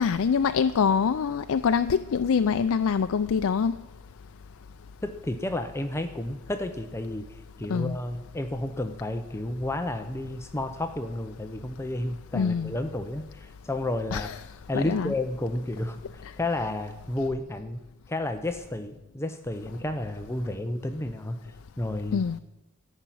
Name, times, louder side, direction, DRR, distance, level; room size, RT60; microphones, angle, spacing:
voice 1, 0.0-3.7 7.7-8.0 12.3-12.7 14.1-14.3 14.7-15.1 22.1-22.4, left 6 dB, 65° left, 0.4 m, -24 dB
voice 2, 5.0-14.3 14.7-17.8 18.1-22.3, left 1 dB, 10° left, 0.6 m, -31 dB
14.0 x 5.8 x 9.1 m
head